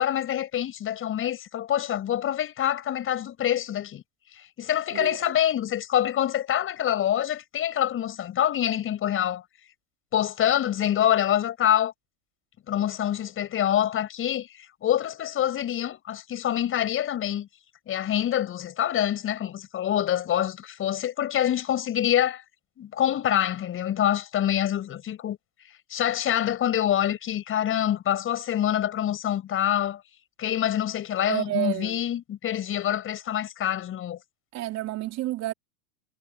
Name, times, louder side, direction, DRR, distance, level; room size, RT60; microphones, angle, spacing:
voice 1, 0.0-4.0 4.4-9.4 10.1-11.9 12.7-17.5 17.9-22.4 22.8-25.4 25.9-30.0 30.4-34.2, left 11 dB, 30° left, 7.1 m, -26 dB
voice 2, 4.9-5.4 31.3-32.0 34.5-35.5, right 16 dB, 35° right, 3.8 m, -30 dB
supercardioid pair, 135°, 45 cm